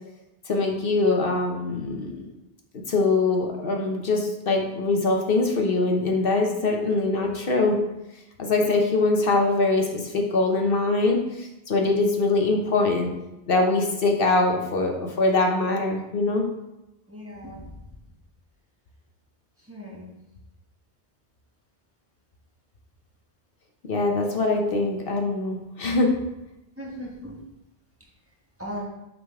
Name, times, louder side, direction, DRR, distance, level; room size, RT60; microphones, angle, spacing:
voice 1, 0.5-2.3 2.9-7.8 8.4-13.1 13.5-16.4 23.9-26.1, left 3 dB, 60° left, 2 dB, 1.0 m, -23 dB
voice 2, 17.1-17.6 19.7-20.1 26.8-27.3 28.6-28.9, equal, 15° right, -4 dB, 1.3 m, -37 dB
6.3 x 3.9 x 4.7 m, 0.93 s
omnidirectional pair, 1.1 m